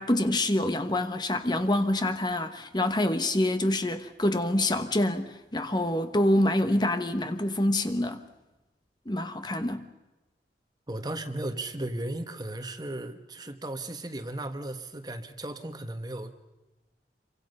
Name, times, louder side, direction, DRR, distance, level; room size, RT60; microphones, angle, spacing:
voice 1, 0.0-8.2 9.1-9.9, left 1 dB, 25° left, 1.2 m, -26 dB
voice 2, 10.9-16.4, right 1 dB, 25° right, 1.4 m, -36 dB
28.0 x 24.5 x 5.5 m
head